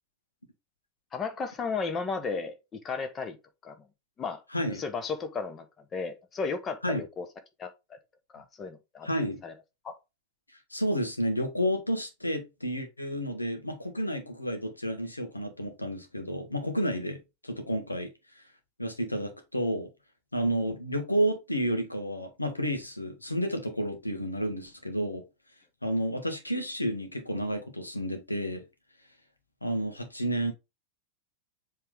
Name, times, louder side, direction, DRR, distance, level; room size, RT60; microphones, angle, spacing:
voice 1, 1.1-3.4 3.6-3.9 4.2-7.3 7.6-7.7 8.3-9.1 9.4-9.5 9.8-10.0, left 4 dB, 25° left, 1.2 m, -34 dB
voice 2, 4.5-4.8 6.8-7.0 9.0-9.4 10.7-18.1 18.4-18.5 18.8-19.9 20.3-25.2 25.8-28.6 29.6-30.5, equal, 85° left, 1.5 m, -31 dB
7.3 x 3.7 x 3.6 m
figure-of-eight pair, 90°, 0 cm